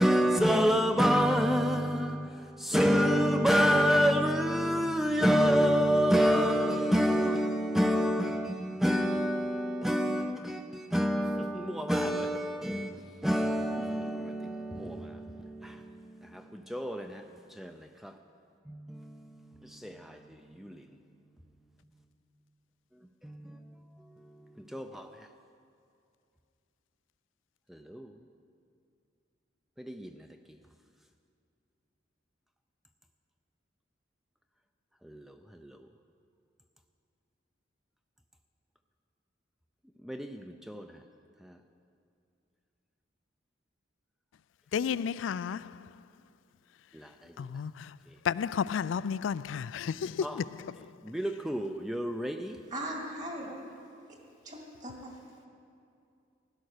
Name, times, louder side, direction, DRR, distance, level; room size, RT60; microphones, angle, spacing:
voice 1, 0.0-17.2 17.5-18.1 18.7-21.0 23.2-25.3 27.7-28.1 29.8-30.3 35.0-35.8 40.0-40.9 41.4-41.6 46.9-47.3 50.2-50.4 51.0-52.6, equal, ahead, 0.4 m, -28 dB
voice 2, 44.7-45.9 47.4-48.0 48.2-50.9, left 7 dB, 90° left, 0.3 m, -32 dB
voice 3, 52.7-53.6 54.4-55.2, right 1 dB, 40° right, 2.0 m, -39 dB
16.0 x 11.5 x 6.5 m
head